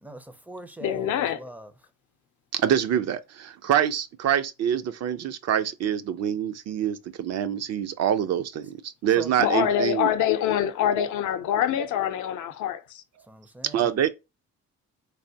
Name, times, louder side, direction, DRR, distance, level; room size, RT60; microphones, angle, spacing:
voice 1, 0.0-1.7 9.2-9.3 13.3-14.1, right 1 dB, 5° right, 0.4 m, -41 dB
voice 2, 0.8-1.4 9.4-13.0, left 10 dB, 75° left, 0.6 m, -25 dB
voice 3, 2.5-10.1 13.7-14.1, right 9 dB, 60° right, 0.5 m, -25 dB
3.3 x 2.5 x 2.7 m
cardioid pair, 90°, 30 cm